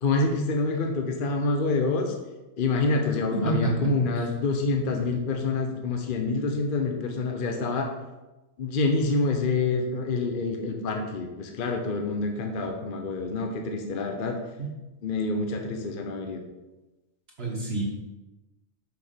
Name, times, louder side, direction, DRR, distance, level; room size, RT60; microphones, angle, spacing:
voice 1, 0.0-2.1 2.6-7.9 8.6-14.4 15.0-16.4, left 3 dB, 45° left, 3 dB, 1.0 m, -27 dB
voice 2, 3.3-3.9 14.6-14.7 17.4-17.8, right 3 dB, 45° right, -4 dB, 1.8 m, -27 dB
6.6 x 5.0 x 6.8 m, 1.1 s
omnidirectional pair, 1.4 m